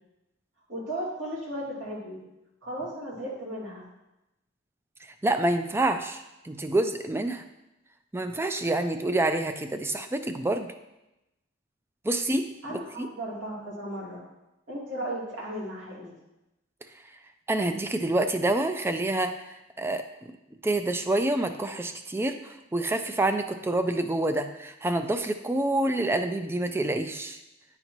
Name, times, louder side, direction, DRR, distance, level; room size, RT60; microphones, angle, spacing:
voice 1, 0.7-2.2 2.6-3.8 12.6-14.2 14.7-16.1, right 1 dB, 75° right, -6 dB, 2.4 m, -35 dB
voice 2, 5.2-7.4 8.1-10.7 12.0-13.1 17.5-19.4 19.8-20.3 20.6-27.4, right 2 dB, 10° right, 8 dB, 0.3 m, -27 dB
10.0 x 4.0 x 3.0 m, 0.94 s
head